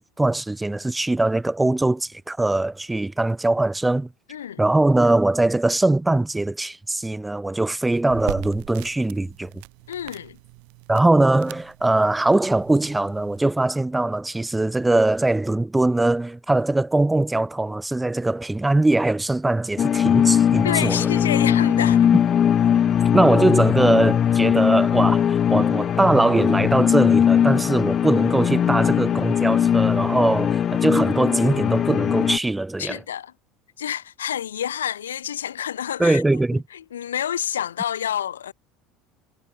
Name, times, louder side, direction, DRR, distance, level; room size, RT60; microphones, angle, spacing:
voice 1, 0.0-4.1 4.6-9.5 10.9-21.0 23.1-33.0 36.0-36.6, right 2 dB, 10° right, 3.3 m, -21 dB
voice 2, 4.3-4.6 9.9-10.4 20.6-22.1 32.8-33.3 33.8-36.4 36.7-38.5, left 10 dB, 80° left, 1.7 m, -28 dB
sound 1, 8.0-13.5, right 37 dB, 65° right, 6.1 m, -40 dB
sound 2, 19.8-32.4, left 9 dB, 40° left, 2.5 m, -20 dB
hypercardioid pair, 70°, 0 cm